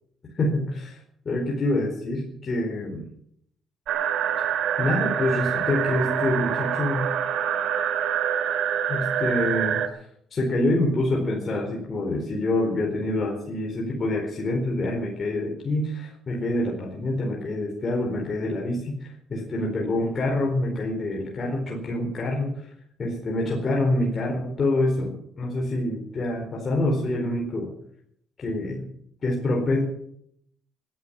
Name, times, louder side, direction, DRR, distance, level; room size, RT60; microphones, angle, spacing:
voice 1, 0.4-1.0 1.2-3.0 4.8-7.1 8.9-10.1 10.3-22.7 23.0-27.7 28.4-28.9 29.2-29.8, left 1 dB, 40° left, 0 dB, 4.3 m, -26 dB
sound 1, 3.9-9.9, right 9 dB, 80° right, 2.2 m, -26 dB
17.0 x 11.0 x 7.7 m, 0.70 s
cardioid pair, 90°, 0 cm